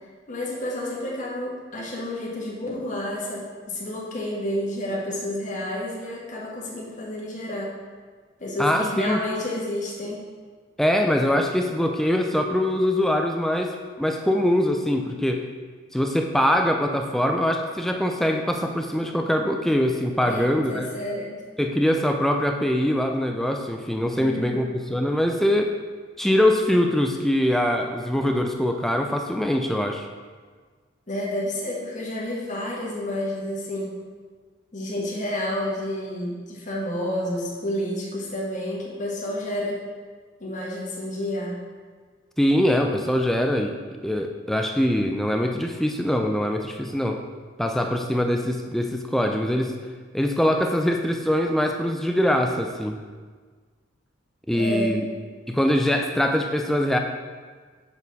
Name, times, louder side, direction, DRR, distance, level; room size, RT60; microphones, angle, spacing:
voice 1, 0.3-7.7 8.4-10.3 20.2-21.3 24.2-24.7 31.1-33.9 34.7-39.8 40.4-41.6 54.5-55.0, left 1 dB, 40° left, -4 dB, 1.3 m, -30 dB
voice 2, 8.6-9.2 10.8-15.4 15.9-20.9 21.6-25.7 26.2-30.1 42.4-43.7 44.0-47.2 47.6-49.7 50.1-53.0 54.5-55.1 55.5-57.0, left 1 dB, ahead, 3 dB, 0.3 m, -23 dB
7.0 x 4.2 x 4.1 m, 1.5 s
head